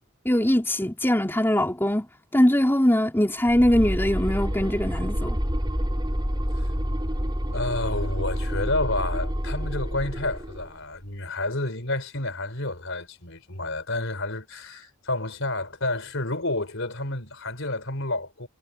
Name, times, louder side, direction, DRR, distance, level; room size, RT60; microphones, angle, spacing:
voice 1, 0.2-5.4, left 1 dB, 10° left, 3.4 m, -22 dB
sound 1, 3.5-10.7, equal, 20° right, 6.3 m, -28 dB
voice 2, 7.5-18.5, left 2 dB, 60° left, 4.5 m, -30 dB
head